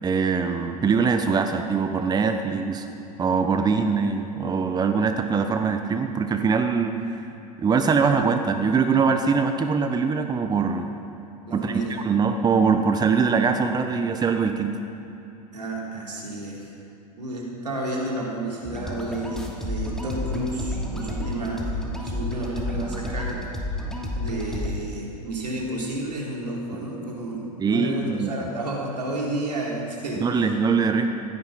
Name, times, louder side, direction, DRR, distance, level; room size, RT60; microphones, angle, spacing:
voice 1, 0.0-2.9 3.2-7.2 7.6-10.9 11.5-14.7 27.6-28.3 30.1-31.1, right 5 dB, 20° right, 7 dB, 1.0 m, -22 dB
voice 2, 11.5-12.0 15.5-16.7 17.2-23.4 24.1-30.3, right 1 dB, 85° right, -3 dB, 3.8 m, -31 dB
sound 1, 18.6-24.7, left 1 dB, ahead, 2.8 m, -31 dB
16.5 x 13.5 x 5.8 m, 2.9 s
hypercardioid pair, 90°, 20 cm